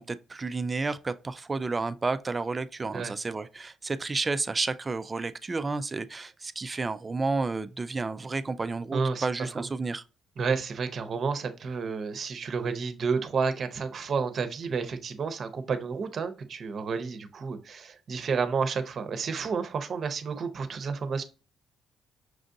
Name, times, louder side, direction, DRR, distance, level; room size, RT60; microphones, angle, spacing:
voice 1, 0.0-10.0, right 3 dB, 25° right, 0.3 m, -31 dB
voice 2, 8.9-9.3 10.4-21.2, right 5 dB, 55° right, 0.7 m, -30 dB
6.1 x 2.5 x 2.6 m
cardioid pair, 90°, 0 cm